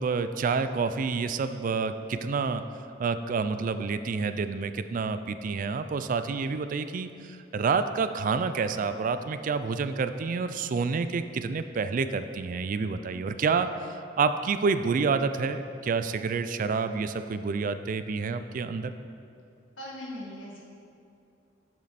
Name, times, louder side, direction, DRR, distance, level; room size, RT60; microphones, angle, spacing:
voice 1, 0.0-2.6 3.0-18.9, right 5 dB, 45° right, 11 dB, 0.3 m, -28 dB
voice 2, 19.8-20.6, left 1 dB, 85° left, -3 dB, 1.8 m, -39 dB
7.5 x 7.4 x 4.1 m, 2.5 s
head